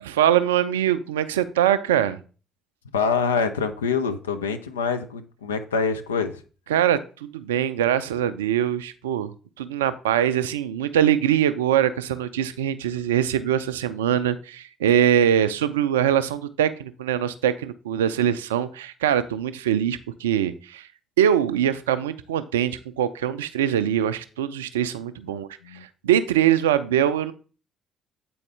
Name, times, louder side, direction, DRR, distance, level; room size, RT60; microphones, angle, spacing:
voice 1, 0.0-2.2 6.7-20.9 21.2-27.3, right 10 dB, 75° right, 13 dB, 0.4 m, -23 dB
voice 2, 2.9-6.4 25.3-25.4 25.6-25.9, left 5 dB, 80° left, 8 dB, 0.5 m, -25 dB
8.5 x 4.2 x 3.3 m, 0.37 s
figure-of-eight pair, 45°, 0 cm